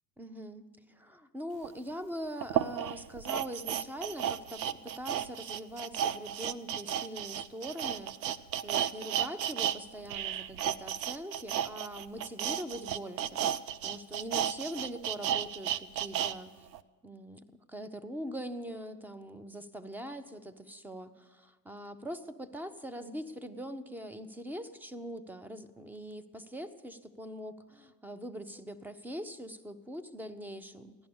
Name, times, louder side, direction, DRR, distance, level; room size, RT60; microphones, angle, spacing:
voice 1, 0.2-0.6 0.9-13.4 13.8-16.5 17.0-17.4 17.7-31.0, equal, 5° right, 12 dB, 0.5 m, -42 dB
sound 1, 1.6-1.7 2.4-9.8 10.0-16.3 16.7-16.8, right 10 dB, 85° right, 0.7 m, -33 dB
16.0 x 11.0 x 7.0 m, 1.3 s
hypercardioid pair, 105°, 49 cm